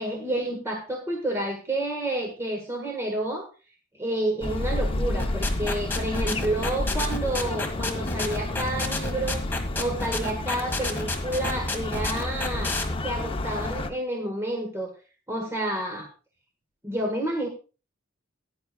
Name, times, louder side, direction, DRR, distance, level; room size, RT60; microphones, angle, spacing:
voice 1, 0.0-3.5 3.9-9.4 9.8-14.9 15.3-16.1 16.8-17.5, right 1 dB, 15° right, 1 dB, 1.5 m, -30 dB
sound 1, 4.4-13.9, left 2 dB, 25° left, 0.7 m, -30 dB
sound 2, 5.2-12.8, left 3 dB, 10° left, 1.6 m, -30 dB
16.0 x 10.0 x 2.3 m, 0.33 s
head